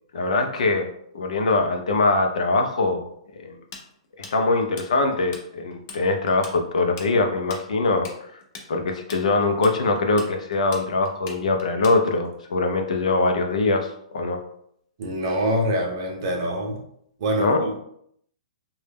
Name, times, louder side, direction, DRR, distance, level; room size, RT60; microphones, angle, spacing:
voice 1, 0.1-3.0 3.4-3.6 4.3-8.1 8.7-14.4 17.4-17.7, left 3 dB, 90° left, 4 dB, 0.5 m, -22 dB
Tools, 3.7-5.4 5.7-6.0 6.3-12.3, left 4 dB, 30° left, 0.4 m, -40 dB
voice 2, 15.0-16.8 17.2-17.8, equal, 40° right, 0 dB, 0.6 m, -25 dB
2.2 x 2.0 x 3.3 m, 0.71 s
hypercardioid pair, 170°, 4 cm